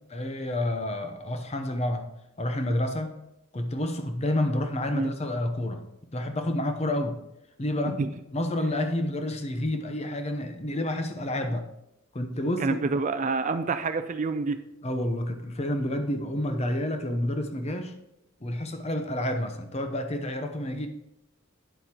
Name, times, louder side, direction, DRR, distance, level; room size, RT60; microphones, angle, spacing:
voice 1, 0.1-2.1 2.4-3.1 3.5-5.8 6.1-7.2 7.6-8.0 8.3-11.7 12.1-12.9 14.8-17.9 18.4-20.9, left 1 dB, 30° left, 7 dB, 0.7 m, -29 dB
voice 2, 12.6-14.6, right 4 dB, 35° right, 10 dB, 0.4 m, -27 dB
9.2 x 7.8 x 2.9 m, 0.87 s
head